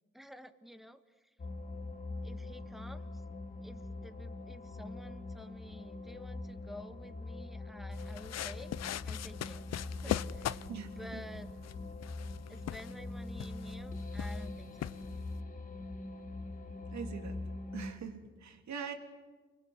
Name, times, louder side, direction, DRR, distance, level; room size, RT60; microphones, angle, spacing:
voice 1, 0.1-1.3 2.2-3.2 3.6-8.7 9.0-9.6 10.0-10.7 11.0-11.5 12.5-15.0, equal, ahead, 10 dB, 1.7 m, -51 dB
sound 1, 1.4-17.9, left 2 dB, 25° left, 2.6 m, -43 dB
sound 2, 7.9-15.4, left 11 dB, 60° left, 0.7 m, -41 dB
voice 2, 10.7-11.2 16.9-17.4 17.7-18.9, right 6 dB, 65° right, 5 dB, 3.5 m, -43 dB
29.0 x 21.5 x 8.2 m, 1.4 s
cardioid pair, 90°, 30 cm